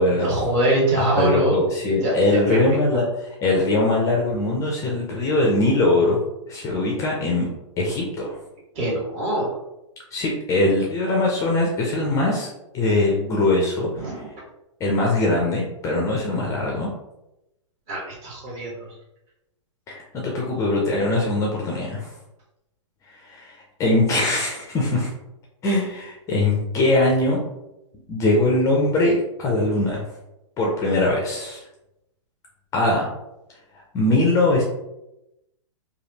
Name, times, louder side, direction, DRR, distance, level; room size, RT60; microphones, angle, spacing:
voice 1, 0.1-1.6 2.0-2.8 8.7-9.6 14.0-14.3 17.9-18.9, right 1 dB, 35° right, -5 dB, 1.4 m, -23 dB
voice 2, 1.2-6.2 6.5-7.5 7.8-8.4 10.1-12.5 12.7-13.9 14.8-16.9 19.9-22.1 23.3-23.5 23.8-25.1 25.6-27.4 28.1-30.0 30.6-31.6 32.7-33.1 33.9-34.6, left 2 dB, 20° left, -1 dB, 0.5 m, -21 dB
3.2 x 2.3 x 2.8 m, 0.90 s
hypercardioid pair, 135°, 16 cm